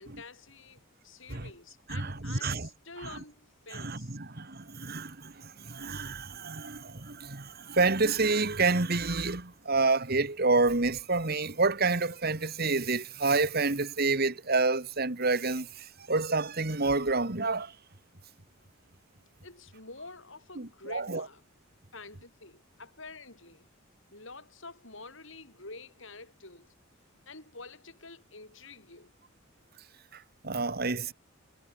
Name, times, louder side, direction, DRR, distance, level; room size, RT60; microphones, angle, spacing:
voice 1, 0.0-4.2 5.8-6.1 19.4-21.4 21.9-23.7 24.1-26.7 27.2-29.1, left 3 dB, 60° left, 6.9 m, -48 dB
voice 2, 1.9-2.7 3.7-17.7 20.6-21.2 30.1-31.1, right 3 dB, 45° right, 1.8 m, -28 dB
head